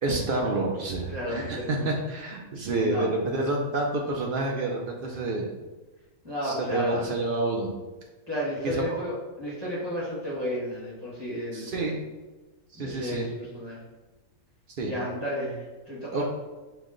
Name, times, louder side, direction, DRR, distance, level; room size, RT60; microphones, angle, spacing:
voice 1, 0.0-5.5 6.4-7.7 8.6-9.0 11.5-12.0 12.8-13.3 14.8-14.9 16.1-16.2, right 2 dB, 80° right, -1 dB, 0.4 m, -28 dB
voice 2, 1.1-1.9 2.7-3.1 6.2-7.2 8.3-11.9 12.7-13.8 14.8-16.2, equal, 20° right, -6 dB, 1.0 m, -33 dB
4.8 x 2.1 x 3.7 m, 1.2 s
omnidirectional pair, 1.5 m